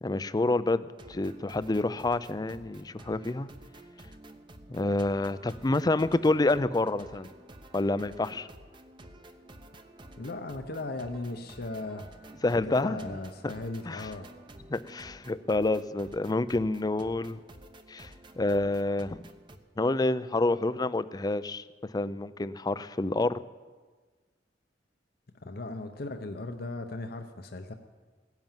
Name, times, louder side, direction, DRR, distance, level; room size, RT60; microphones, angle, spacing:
voice 1, 0.0-3.5 4.7-7.3 7.7-8.5 12.4-13.0 13.4-13.5 13.9-14.1 14.7-17.4 17.9-18.1 18.4-19.2 19.8-21.7 21.9-23.4, left 2 dB, 20° left, 15 dB, 0.4 m, -28 dB
sound 1, 0.9-19.6, right 1 dB, 25° right, 0.9 m, -51 dB
voice 2, 10.2-12.1 12.6-14.3 25.4-27.7, left 2 dB, 60° left, 6 dB, 0.8 m, -37 dB
16.5 x 10.5 x 7.4 m, 1.4 s
head